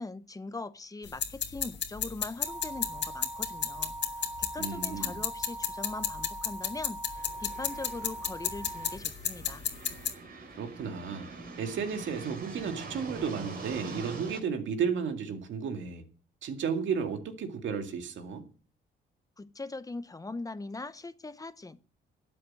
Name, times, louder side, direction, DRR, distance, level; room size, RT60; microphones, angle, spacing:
voice 1, 0.0-4.0 4.4-9.6 19.4-21.9, left 3 dB, 15° left, 0.8 m, -41 dB
sound 1, 1.1-10.1, left 8 dB, 65° left, 1.6 m, -34 dB
sound 2, 2.4-9.0, right 2 dB, 20° right, 0.7 m, -41 dB
voice 2, 4.6-5.2 10.6-11.3 11.6-16.0 16.4-18.4, right 6 dB, 70° right, 2.1 m, -33 dB
sound 3, 7.2-14.4, right 3 dB, 50° right, 3.4 m, -44 dB
12.5 x 7.9 x 7.7 m
cardioid pair, 90°, 20 cm